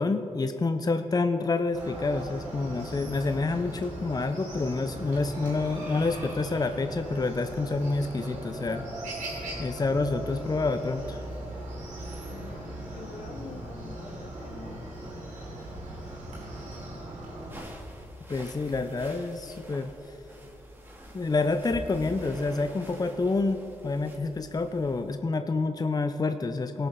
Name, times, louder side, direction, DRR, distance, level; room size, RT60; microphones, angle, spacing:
voice 1, 0.0-8.8 9.6-11.2 18.3-19.9 21.1-23.6 23.8-26.9, left 3 dB, 30° left, 8 dB, 0.6 m, -28 dB
Chicken rooster, 1.7-17.6, right 1 dB, 85° right, 2.6 m, -39 dB
voice 2, 12.3-14.9, left 4 dB, 65° left, 6 dB, 1.0 m, -46 dB
sound 1, 17.5-25.1, equal, 15° right, 2.0 m, -46 dB
18.0 x 6.9 x 3.8 m, 2.8 s
supercardioid pair, 40°, 12 cm